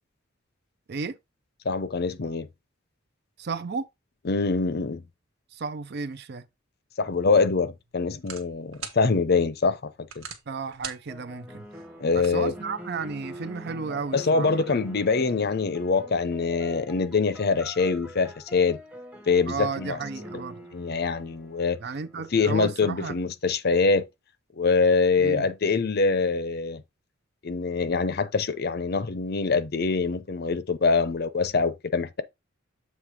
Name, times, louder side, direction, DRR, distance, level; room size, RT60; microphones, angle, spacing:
voice 1, 1.6-2.5 4.3-5.0 7.0-10.2 12.0-12.5 14.1-18.8 19.3-20.0 20.7-21.8 22.3-24.1 24.6-26.8 27.4-32.2, left 4 dB, 50° left, 0.6 m, -24 dB
voice 2, 3.4-3.9 5.5-6.5 10.5-11.7 12.1-14.9 19.5-20.6 21.8-23.2 25.2-25.5, right 4 dB, 50° right, 0.5 m, -33 dB
sound 1, 7.0-13.1, right 7 dB, 90° right, 1.5 m, -45 dB
sound 2, 11.1-22.6, equal, 5° right, 0.9 m, -44 dB
7.5 x 3.1 x 4.9 m
head